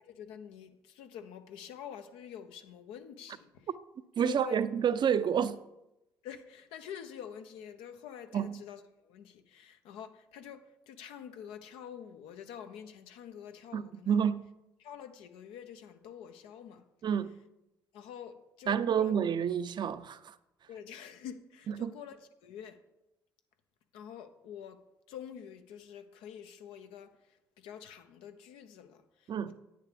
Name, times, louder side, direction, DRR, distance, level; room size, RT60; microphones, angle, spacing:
voice 1, 0.0-3.7 4.2-4.6 6.2-14.2 14.8-16.8 17.9-19.1 20.7-22.8 23.9-24.8 25.1-27.2 27.6-29.6, left 9 dB, 80° left, 0.8 m, -47 dB
voice 2, 4.2-5.6 8.3-8.6 13.7-14.5 17.0-17.4 18.7-20.3 21.7-21.9 29.3-29.6, right 8 dB, 50° right, 0.6 m, -29 dB
10.0 x 9.4 x 3.4 m
hypercardioid pair, 50°, 10 cm